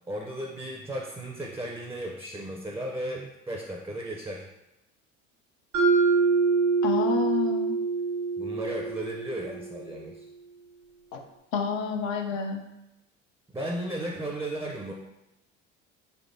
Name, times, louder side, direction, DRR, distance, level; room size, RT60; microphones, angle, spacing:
voice 1, 0.1-4.5 8.4-10.3 13.5-14.9, right 1 dB, 10° right, -1 dB, 0.4 m, -35 dB
Mallet percussion, 5.7-9.8, right 4 dB, 85° right, 1.1 m, -25 dB
voice 2, 6.8-7.8 11.1-11.2 11.5-12.7, left 5 dB, 80° left, 4 dB, 0.6 m, -29 dB
3.3 x 3.3 x 2.6 m, 0.92 s
hypercardioid pair, 65°, 38 cm